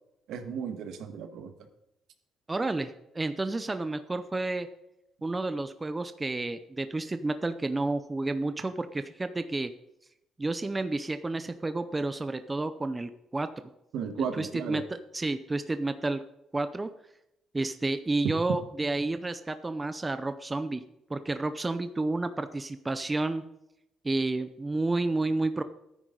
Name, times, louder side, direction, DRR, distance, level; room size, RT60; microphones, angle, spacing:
voice 1, 0.3-1.5 13.9-14.8, right 7 dB, 75° right, 7 dB, 1.5 m, -35 dB
voice 2, 2.5-4.7 5.2-9.7 10.4-13.5 14.4-14.8 15.1-16.2 16.5-16.9 17.5-20.8 21.1-23.4 24.0-25.6, right 2 dB, 15° right, 10 dB, 0.6 m, -30 dB
13.5 x 9.6 x 3.9 m, 0.84 s
cardioid pair, 130°, 0 cm